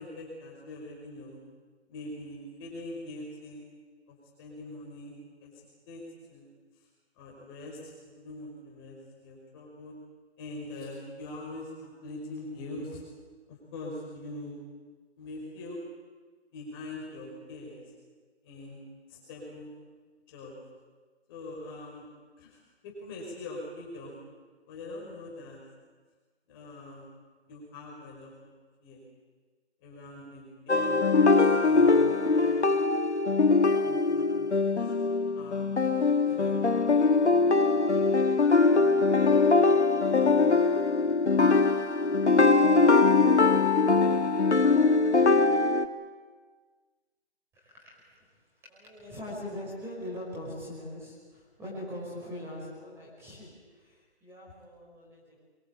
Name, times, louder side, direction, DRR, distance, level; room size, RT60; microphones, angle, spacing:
voice 1, 0.0-1.4 1.9-3.6 4.1-6.0 6.3-6.5 7.2-9.9 10.4-13.0 13.5-14.6 15.2-15.8 16.5-17.8 18.4-18.8 19.1-19.7 20.3-20.5 21.3-22.0 22.4-22.6 22.8-24.2 24.7-25.6 26.5-27.1 27.5-28.5 28.8-29.0 29.8-31.3 31.6-32.9 33.8-34.9 35.4-35.7 36.2-36.5 36.8-37.0 37.2-37.8, left 2 dB, 20° left, -3 dB, 5.3 m, -43 dB
sound 1, 30.7-45.9, left 3 dB, 80° left, 1.8 m, -22 dB
voice 2, 47.5-48.1 48.6-55.4, left 1 dB, 5° right, -5 dB, 5.7 m, -42 dB
23.5 x 22.0 x 8.6 m, 1.4 s
figure-of-eight pair, 155°, 34 cm